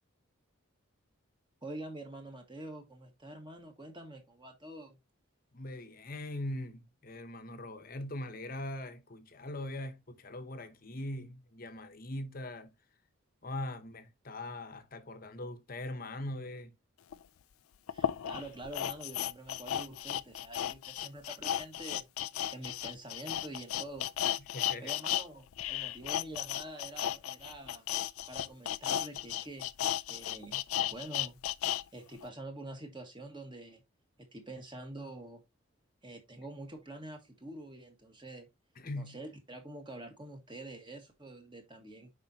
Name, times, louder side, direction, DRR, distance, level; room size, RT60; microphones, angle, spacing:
voice 1, 1.6-5.0 17.9-22.1 22.5-24.1 24.8-27.9 28.3-29.7 30.1-31.4 31.9-33.8 34.2-35.4 36.0-38.5 39.0-42.1, right 1 dB, 20° right, 1.5 m, -46 dB
voice 2, 5.5-12.7 13.4-16.7 18.3-18.4 24.4-25.0 38.8-39.2, left 1 dB, 40° left, 0.9 m, -41 dB
sound 1, 17.1-17.2 17.9-25.3 25.5-31.8 32.2-32.3, left 11 dB, 80° left, 0.4 m, -34 dB
7.3 x 5.3 x 2.8 m
head